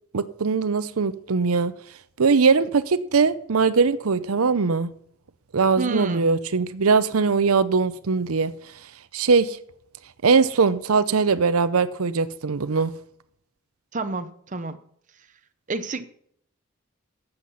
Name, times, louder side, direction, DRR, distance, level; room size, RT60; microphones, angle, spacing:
voice 1, 0.1-1.7 2.2-4.9 5.5-8.5 9.1-9.6 10.2-12.9, right 5 dB, 85° right, 0.7 m, -21 dB
voice 2, 5.8-6.3 13.9-14.8 15.7-16.0, right 3 dB, 35° right, 0.8 m, -29 dB
12.5 x 8.0 x 5.6 m
head